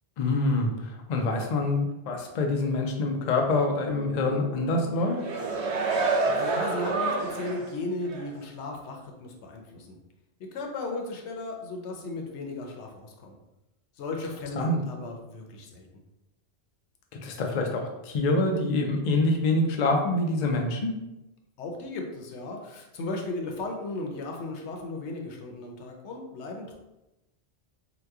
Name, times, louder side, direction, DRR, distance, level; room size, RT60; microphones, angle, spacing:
voice 1, 0.2-5.2 14.6-14.8 17.2-20.9, left 2 dB, 55° left, 2 dB, 0.5 m, -26 dB
Bass guitar, 3.9-7.9, left 3 dB, 55° right, 0.4 m, -45 dB
sound 1, 5.0-7.7 8.1-8.2, right 3 dB, 80° right, 0.8 m, -28 dB
voice 2, 6.3-10.0 10.4-13.3 14.0-15.9 21.6-26.7, left 2 dB, 90° left, 2 dB, 0.9 m, -36 dB
2.9 x 2.2 x 3.4 m, 0.95 s
omnidirectional pair, 1.1 m